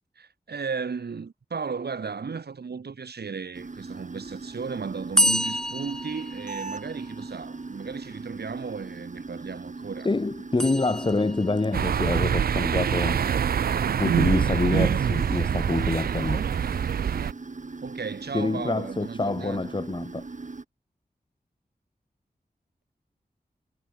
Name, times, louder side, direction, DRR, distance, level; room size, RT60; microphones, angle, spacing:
voice 1, 0.2-10.1 17.8-19.7, right 5 dB, 85° right, 2.7 m, -35 dB
sound 1, 3.5-20.6, right 3 dB, 50° right, 2.5 m, -39 dB
sound 2, 5.2-7.1 10.6-11.6, equal, 5° left, 0.5 m, -27 dB
voice 2, 10.0-13.2 14.0-16.4 18.3-20.2, left 3 dB, 30° left, 1.0 m, -26 dB
sound 3, 11.7-17.3, right 8 dB, 65° right, 0.4 m, -25 dB
cardioid pair, 50°, 16 cm